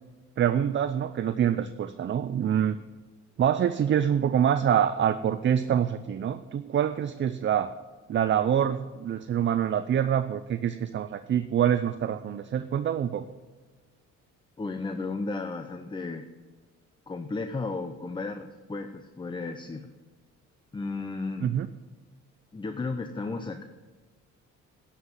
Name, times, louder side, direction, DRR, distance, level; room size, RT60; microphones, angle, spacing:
voice 1, 0.4-2.8 3.4-7.7 8.1-13.3 21.4-21.7, right 9 dB, 40° right, 11 dB, 0.5 m, -25 dB
voice 2, 14.6-16.3 17.1-19.9 20.7-21.5 22.5-23.6, left 3 dB, 15° left, 8 dB, 0.6 m, -34 dB
11.5 x 5.8 x 7.3 m, 1.3 s
cardioid pair, 90°, 30 cm